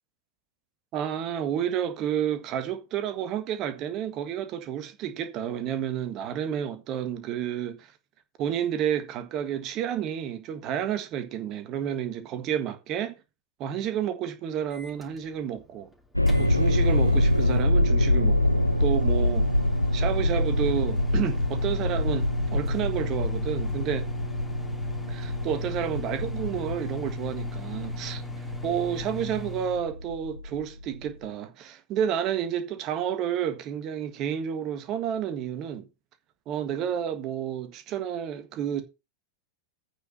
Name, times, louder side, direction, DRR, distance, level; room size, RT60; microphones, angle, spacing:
voice 1, 0.9-7.9 8.4-13.2 13.6-15.9 16.4-19.5 19.9-24.1 25.1-28.2 28.6-35.9 36.5-38.8, right 9 dB, 35° right, 1.6 m, -30 dB
Microwave oven, 14.7-29.8, left 3 dB, 5° left, 2.7 m, -39 dB
sound 1, 16.2-31.2, left 1 dB, 90° left, 0.4 m, -25 dB
8.9 x 5.1 x 6.7 m
figure-of-eight pair, 90°, 0 cm